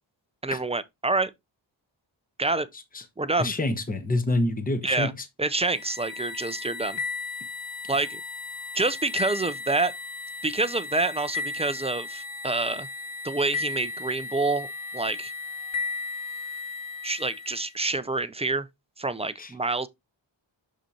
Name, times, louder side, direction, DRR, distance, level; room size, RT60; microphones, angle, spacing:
voice 1, 0.4-1.3 2.4-2.7 3.2-3.5 4.8-5.1 5.4-7.0 7.9-8.2 8.7-9.9 10.4-12.9 13.2-14.7 14.9-15.3 17.0-18.7 19.0-19.9, right 3 dB, 15° right, 0.3 m, -27 dB
voice 2, 3.4-5.1 19.4-19.5, left 2 dB, 20° left, 0.9 m, -26 dB
sound 1, 5.6-17.7, left 4 dB, 65° left, 2.6 m, -35 dB
6.6 x 5.2 x 2.8 m
wide cardioid pair, 145°, 47 cm